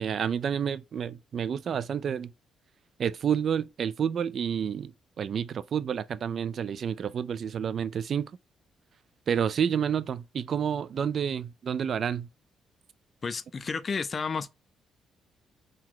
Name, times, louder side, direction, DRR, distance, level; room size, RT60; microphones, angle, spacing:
voice 1, 0.0-2.3 3.0-8.3 9.3-12.3, right 8 dB, 55° right, 0.3 m, -29 dB
voice 2, 13.2-14.5, left 5 dB, 40° left, 0.4 m, -31 dB
3.9 x 2.3 x 4.5 m
cardioid pair, 90°, 0 cm